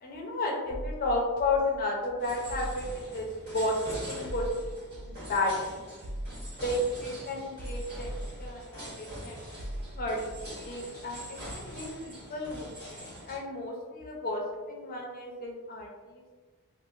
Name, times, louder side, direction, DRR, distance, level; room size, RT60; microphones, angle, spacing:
voice 1, 0.0-3.3 3.5-3.8 4.1-4.5 4.9-5.8 6.6-9.4 9.9-16.2, left 2 dB, 40° left, 0 dB, 0.5 m, -33 dB
sound 1, 0.7-9.1 9.4-11.3, right 1 dB, 70° right, 0.4 m, -42 dB
sound 2, 2.2-13.4, equal, 50° right, 1.4 m, -44 dB
2.8 x 2.4 x 2.4 m, 1.4 s
head